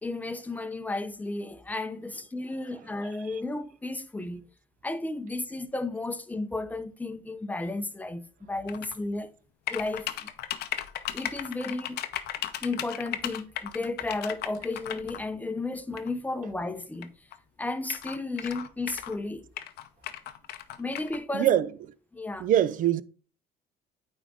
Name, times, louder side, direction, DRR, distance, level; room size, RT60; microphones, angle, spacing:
voice 1, 0.0-4.4 4.8-8.2 8.5-9.3 9.7-10.1 11.1-12.0 12.6-17.1 17.6-19.4 20.8-21.6 22.1-22.5, left 2 dB, 10° left, 0.6 m, -33 dB
sound 1, 8.7-9.0 9.7-15.2 16.0-16.1 17.0-17.1 17.3-17.4 17.8-19.2 19.6-21.2, left 12 dB, 75° left, 0.6 m, -36 dB
voice 2, 21.3-21.7 22.4-23.0, right 11 dB, 50° right, 0.4 m, -23 dB
9.1 x 3.6 x 3.6 m
cardioid pair, 110°, 17 cm